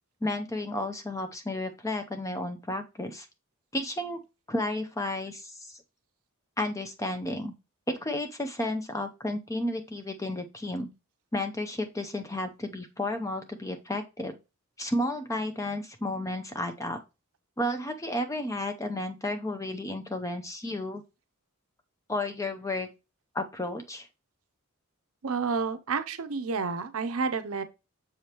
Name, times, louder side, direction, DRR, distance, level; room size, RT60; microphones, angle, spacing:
voice 1, 0.2-3.3 3.7-4.2 4.5-5.8 6.6-7.5 7.9-10.9 11.3-14.4 14.8-17.0 17.6-21.0 22.1-22.9 23.3-24.1, left 1 dB, 15° left, 0.6 m, -32 dB
voice 2, 25.2-27.6, right 5 dB, 70° right, 0.6 m, -30 dB
6.9 x 5.0 x 2.9 m
head